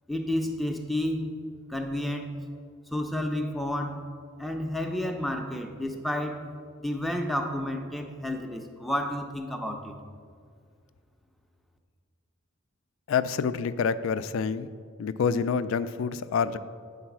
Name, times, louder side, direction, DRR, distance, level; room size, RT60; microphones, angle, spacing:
voice 1, 0.1-1.3 1.7-2.4 2.9-4.0 4.4-6.4 6.8-10.0, left 1 dB, ahead, 3 dB, 0.5 m, -31 dB
voice 2, 13.1-14.7 15.0-16.6, left 6 dB, 65° left, 14 dB, 0.3 m, -27 dB
8.4 x 4.0 x 5.9 m, 2.2 s
head